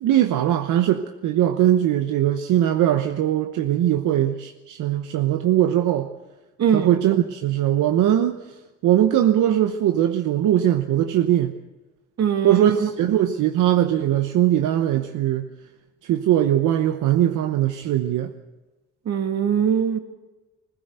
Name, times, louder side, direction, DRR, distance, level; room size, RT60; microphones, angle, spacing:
voice 1, 0.0-6.1 6.7-8.4 8.8-11.6 12.4-15.5 16.0-18.3, right 11 dB, 85° right, 1.0 m, -20 dB
voice 2, 6.6-6.9 12.2-12.9 19.1-20.0, right 8 dB, 60° right, 2.4 m, -21 dB
21.0 x 15.5 x 8.0 m
cardioid pair, 90°, 30 cm